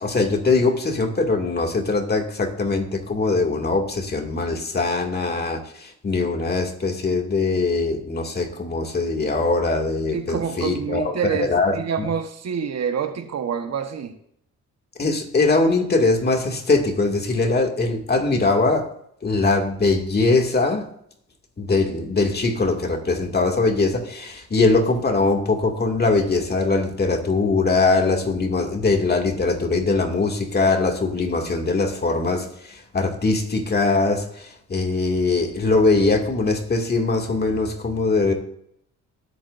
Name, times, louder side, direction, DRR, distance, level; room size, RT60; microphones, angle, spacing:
voice 1, 0.0-12.1 15.0-18.9 19.2-20.9 21.6-38.3, left 3 dB, 35° left, 2.4 m, -21 dB
voice 2, 10.1-14.1, right 7 dB, 60° right, 1.4 m, -27 dB
19.5 x 8.7 x 2.7 m
cardioid pair, 90°, 30 cm